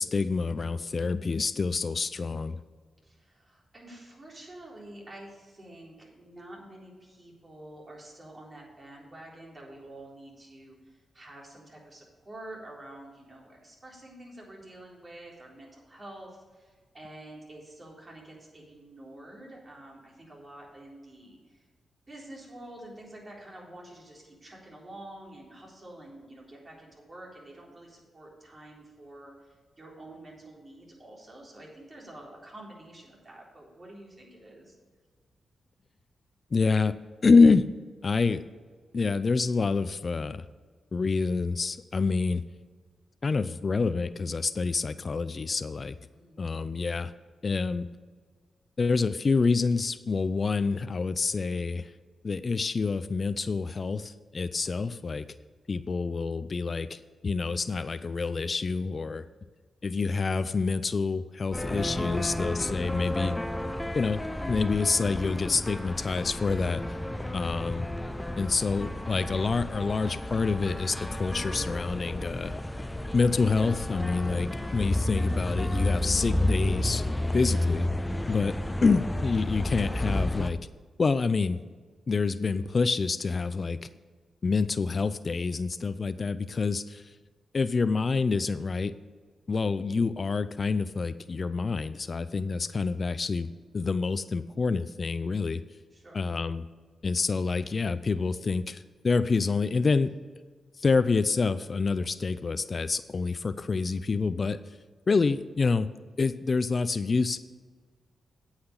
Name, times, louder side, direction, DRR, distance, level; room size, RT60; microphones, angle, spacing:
voice 1, 0.0-2.6 36.5-37.0 37.2-37.7 38.0-38.4 38.9-40.4 40.9-42.4 43.2-45.9 46.4-47.1 47.4-47.9 48.8-51.9 52.2-55.2 55.7-59.2 59.8-63.4 63.9-64.2 64.5-66.8 67.3-67.8 68.4-72.5 73.1-77.1 77.3-77.9 78.3-80.6 81.0-81.6 82.1-83.8 84.4-87.0 87.5-88.9 89.5-95.6 96.1-96.6 97.0-100.1 100.8-104.6 105.1-105.9 106.2-107.4, left 4 dB, 50° left, 13 dB, 0.5 m, -27 dB
voice 2, 3.0-21.6 22.1-34.7 46.1-46.4 67.1-67.4 78.2-78.5 95.9-96.2, right 1 dB, 35° right, -3 dB, 3.7 m, -48 dB
sound 1, 61.5-80.5, left 1 dB, 10° left, 0.7 m, -31 dB
8.7 x 5.8 x 8.1 m, 1.5 s
cardioid pair, 60°, 0 cm